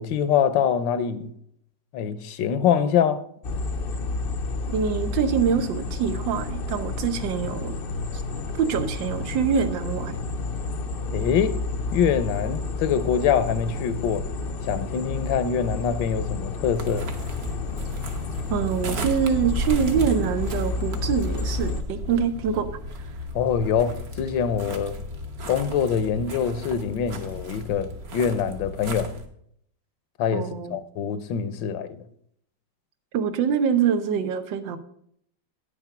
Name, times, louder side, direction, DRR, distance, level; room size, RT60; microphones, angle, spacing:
voice 1, 0.0-1.3 1.9-3.2 11.1-11.6 11.9-14.2 14.6-17.1 23.3-25.0 25.5-29.1 30.2-32.0, left 7 dB, 85° left, 1.5 m, -24 dB
sound 1, 3.4-21.8, left 3 dB, 65° left, 0.5 m, -30 dB
voice 2, 4.7-7.8 8.1-8.2 8.6-10.2 18.5-22.7 30.3-30.8 33.1-34.8, right 7 dB, 90° right, 1.6 m, -25 dB
sound 2, 16.8-29.3, equal, 55° right, 1.6 m, -34 dB
9.5 x 7.1 x 5.8 m
omnidirectional pair, 2.0 m